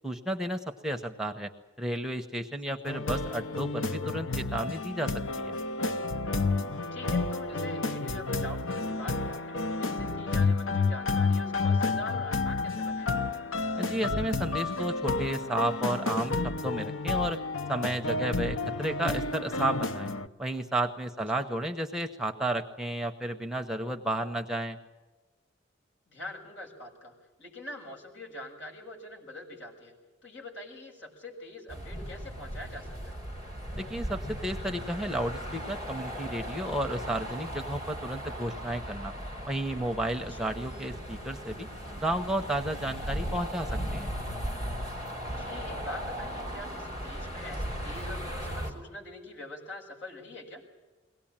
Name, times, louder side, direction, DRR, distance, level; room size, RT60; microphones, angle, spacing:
voice 1, 0.0-1.5 1.8-5.5 13.8-17.4 17.7-20.1 20.4-24.8 33.7-39.1 39.5-41.7 42.0-44.1, right 1 dB, 5° right, 4 dB, 0.9 m, -32 dB
voice 2, 2.6-3.0 6.9-13.1 26.1-27.1 27.4-29.9 30.2-33.2 40.3-40.4 45.3-50.6, left 1 dB, 70° left, 2 dB, 6.7 m, -44 dB
sound 1, 2.9-20.3, left 3 dB, 85° left, 0.9 m, -30 dB
city street, 31.7-48.7, equal, 35° left, 4.0 m, -37 dB
22.5 x 18.0 x 8.8 m, 1.3 s
head